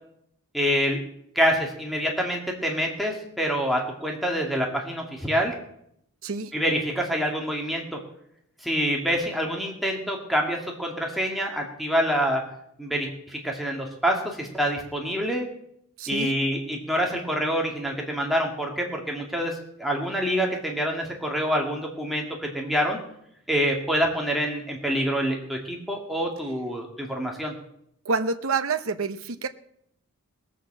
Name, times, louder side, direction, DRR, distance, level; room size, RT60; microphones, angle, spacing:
voice 1, 0.5-1.0 1.4-5.5 6.5-8.0 8.6-12.4 12.8-15.5 16.1-23.0 23.5-27.5, equal, ahead, 0 dB, 2.0 m, -26 dB
voice 2, 16.0-16.3 28.0-29.5, right 4 dB, 65° right, 9 dB, 0.8 m, -27 dB
19.5 x 6.8 x 7.5 m, 0.74 s
head